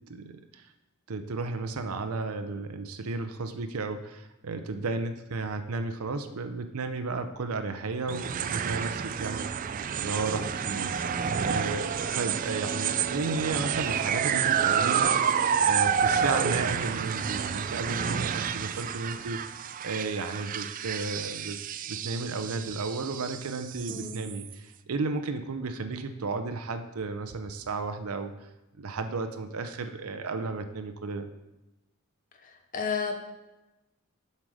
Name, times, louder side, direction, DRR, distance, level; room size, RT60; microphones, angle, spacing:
voice 1, 0.1-0.6 1.1-10.9 11.4-15.1 15.7-19.4 19.8-21.6 21.9-28.3 28.8-31.3, right 3 dB, 85° right, 8 dB, 0.6 m, -33 dB
sound 1, 8.1-24.5, right 7 dB, 40° right, 0.3 m, -29 dB
voice 2, 23.9-24.2 32.4-33.2, left 5 dB, 35° left, 6 dB, 0.7 m, -32 dB
7.4 x 6.5 x 4.8 m, 0.99 s
head